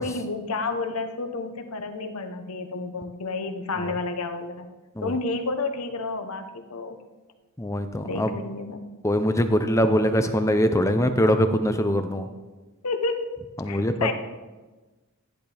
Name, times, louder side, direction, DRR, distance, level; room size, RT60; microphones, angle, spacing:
voice 1, 0.0-4.7 5.0-7.0 8.0-8.8 12.8-13.3 13.7-14.1, left 3 dB, 85° left, 7 dB, 1.0 m, -30 dB
voice 2, 7.6-8.3 9.0-12.3 13.6-14.1, equal, 15° left, 8 dB, 0.6 m, -22 dB
14.0 x 10.0 x 3.5 m, 1.2 s
head